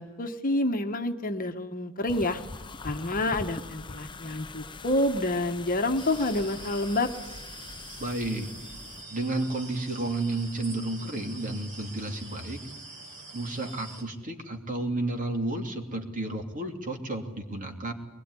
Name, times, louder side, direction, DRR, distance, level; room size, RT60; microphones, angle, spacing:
voice 1, 0.0-2.4 2.8-7.1, left 1 dB, 40° left, 6 dB, 1.4 m, -28 dB
sound 1, 2.1-9.0, left 3 dB, 20° left, 0.8 m, -43 dB
sound 2, 6.0-14.0, right 2 dB, 55° right, 6.0 m, -45 dB
voice 2, 8.0-8.5 9.1-12.6 13.3-17.9, right 2 dB, 35° right, 4 dB, 3.0 m, -32 dB
22.5 x 20.5 x 9.9 m, 1.1 s
head